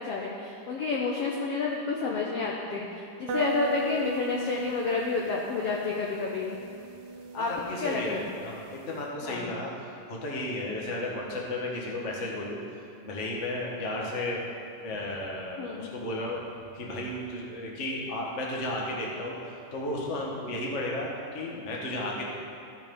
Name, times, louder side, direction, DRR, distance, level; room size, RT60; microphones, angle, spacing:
voice 1, 0.0-6.6 7.3-7.5 7.8-8.4 9.2-9.5 10.7-10.8 15.6-15.9, left 4 dB, 80° left, -1 dB, 1.4 m, -30 dB
sound 1, 3.3-9.0, right 2 dB, 85° right, 1.3 m, -38 dB
voice 2, 7.3-12.6 13.0-14.4 14.8-16.4 16.7-22.3, left 1 dB, 50° left, -2 dB, 0.8 m, -34 dB
14.5 x 5.6 x 5.4 m, 2.7 s
omnidirectional pair, 3.8 m